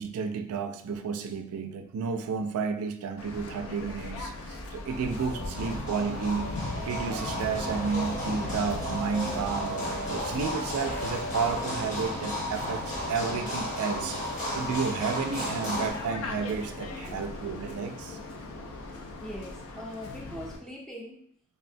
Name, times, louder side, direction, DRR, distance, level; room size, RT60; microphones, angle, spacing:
voice 1, 0.0-6.5 6.9-9.8 10.1-14.2 14.5-18.2, right 5 dB, 90° right, 10 dB, 0.3 m, -32 dB
Waves surf, 3.2-20.6, left 2 dB, 90° left, 0.4 m, -39 dB
sound 1, 4.8-15.9, equal, 35° left, 0.7 m, -34 dB
sound 2, 8.5-14.3, equal, 70° left, 0.9 m, -49 dB
voice 2, 18.8-21.2, equal, ahead, -3 dB, 0.4 m, -42 dB
3.3 x 2.0 x 2.5 m, 0.65 s
head